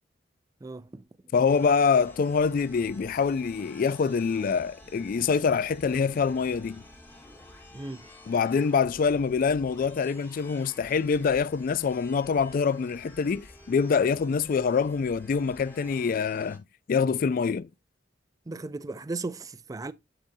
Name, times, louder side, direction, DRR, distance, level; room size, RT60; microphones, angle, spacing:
voice 1, 0.6-1.0 7.7-8.1 18.5-19.9, right 3 dB, 20° right, 0.4 m, -36 dB
voice 2, 1.3-6.8 8.3-16.6 16.9-17.7, left 5 dB, 50° left, 0.3 m, -25 dB
sound 1, 1.5-16.6, left 1 dB, 10° left, 1.4 m, -51 dB
10.5 x 4.0 x 2.6 m
head